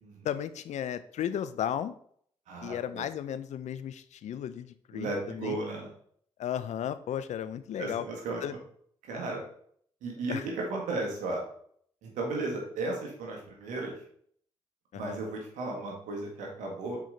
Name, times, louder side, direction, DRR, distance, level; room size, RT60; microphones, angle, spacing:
voice 1, 0.2-1.9 2.6-5.6 6.4-8.0 8.4-8.5 10.3-10.4 14.9-15.2, left 10 dB, 70° left, 14 dB, 0.5 m, -34 dB
voice 2, 2.5-3.0 4.9-5.9 7.8-8.4 9.0-9.4 10.0-11.4 12.0-13.9 14.9-17.0, right 2 dB, 85° right, -1 dB, 1.7 m, -35 dB
5.7 x 4.8 x 3.9 m, 0.62 s
supercardioid pair, 45°, 12 cm